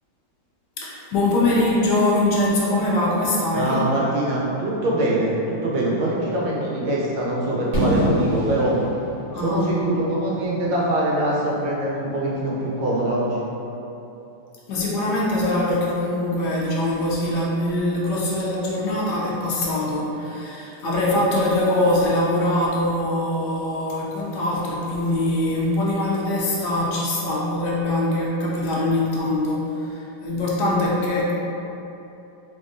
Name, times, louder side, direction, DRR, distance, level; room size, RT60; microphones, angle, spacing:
voice 1, 0.8-3.9 9.3-9.7 14.7-31.3, left 1 dB, 70° left, -5 dB, 1.2 m, -23 dB
voice 2, 3.5-8.7 9.3-13.4, right 1 dB, 90° right, -5 dB, 1.5 m, -23 dB
Fireworks, 7.7-11.6, equal, 60° right, 1.9 m, -27 dB
3.6 x 3.5 x 2.6 m, 2.9 s
omnidirectional pair, 2.0 m